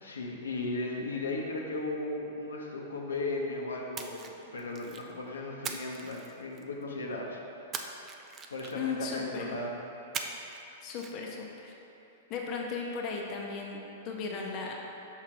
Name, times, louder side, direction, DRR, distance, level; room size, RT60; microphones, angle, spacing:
voice 1, 0.0-7.4 8.5-9.8, left 2 dB, 70° left, -1 dB, 0.7 m, -36 dB
Splash splatter, 3.9-5.1 5.6-6.8 7.7-9.0 10.1-10.6 10.9-11.1, right 5 dB, 25° right, 0.4 m, -40 dB
voice 2, 8.7-9.5 10.8-11.7 12.3-14.8, left 4 dB, 35° left, -1 dB, 0.7 m, -36 dB
6.0 x 3.8 x 4.5 m, 3.0 s
figure-of-eight pair, 100°, 0 cm